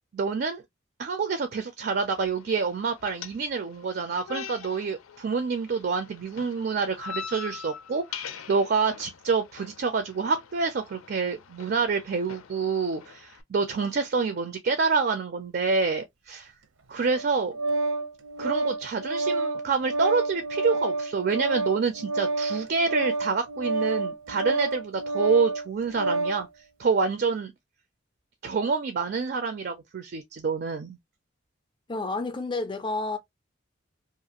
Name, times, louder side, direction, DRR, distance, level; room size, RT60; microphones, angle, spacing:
voice 1, 0.1-0.6 1.0-16.5 16.9-17.5 18.4-26.5 26.8-27.5 28.4-31.0, right 4 dB, 50° right, 0.4 m, -27 dB
sound 1, 1.9-13.4, left 7 dB, 90° left, 0.4 m, -43 dB
Organ, 17.0-26.4, right 3 dB, 85° right, 0.7 m, -29 dB
voice 2, 31.9-33.2, left 3 dB, 25° left, 0.4 m, -30 dB
2.5 x 2.4 x 2.8 m
head